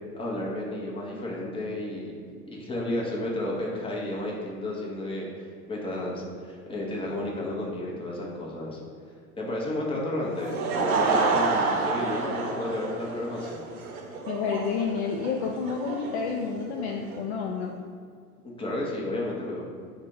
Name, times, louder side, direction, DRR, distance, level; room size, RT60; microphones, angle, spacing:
voice 1, 0.1-2.2 2.5-8.8 9.4-13.6 18.6-19.8, left 1 dB, 10° left, -4 dB, 0.9 m, -32 dB
Laughter / Crowd, 10.2-17.2, right 3 dB, 65° right, 0.8 m, -29 dB
voice 2, 14.3-17.7, left 5 dB, 50° left, 1 dB, 0.5 m, -30 dB
4.7 x 2.4 x 4.6 m, 2.1 s
figure-of-eight pair, 85°, 46 cm